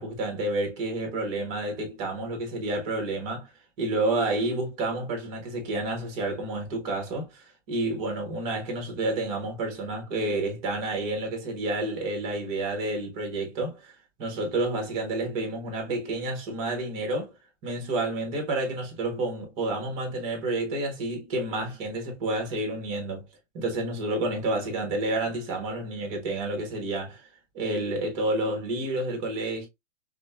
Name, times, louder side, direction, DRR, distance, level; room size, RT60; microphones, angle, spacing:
voice 1, 0.0-3.5 3.8-17.3 17.6-23.3 23.5-27.3 27.5-29.7, right 2 dB, 25° right, 1.2 m, -30 dB
5.1 x 2.2 x 2.2 m
hypercardioid pair, 160°, 37 cm